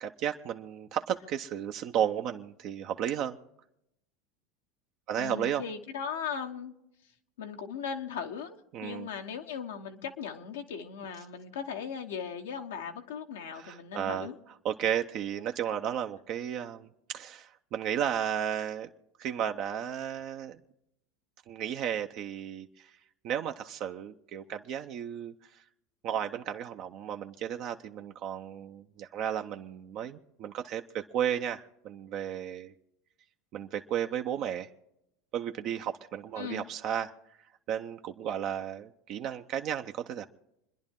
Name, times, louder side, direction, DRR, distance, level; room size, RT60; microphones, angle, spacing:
voice 1, 0.0-3.4 5.1-5.6 8.7-9.1 13.5-14.3 14.6-18.9 19.2-20.6 21.5-22.9 23.2-25.3 26.0-32.7 33.5-34.7 35.3-37.1 37.7-40.3, right 9 dB, 55° right, 5 dB, 0.7 m, -33 dB
voice 2, 5.1-6.7 7.4-14.3 36.3-36.6, left 7 dB, 85° left, 4 dB, 1.3 m, -38 dB
27.5 x 10.5 x 3.7 m, 0.82 s
hypercardioid pair, 100°, 0 cm